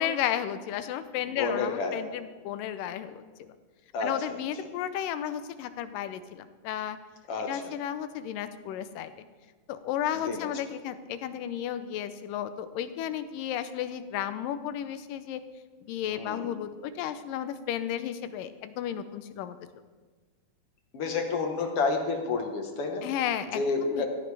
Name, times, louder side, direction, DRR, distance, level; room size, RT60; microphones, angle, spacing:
voice 1, 0.0-3.5 4.0-7.0 7.5-9.1 9.7-15.4 15.9-19.6 23.0-24.1, left 10 dB, 80° left, 11 dB, 2.2 m, -33 dB
voice 2, 1.4-2.0 3.9-4.1 7.3-7.5 10.2-10.5 16.1-16.5 20.9-23.1 23.5-24.1, left 4 dB, 55° left, 3 dB, 1.8 m, -29 dB
16.5 x 14.5 x 3.4 m, 1.4 s
omnidirectional pair, 4.0 m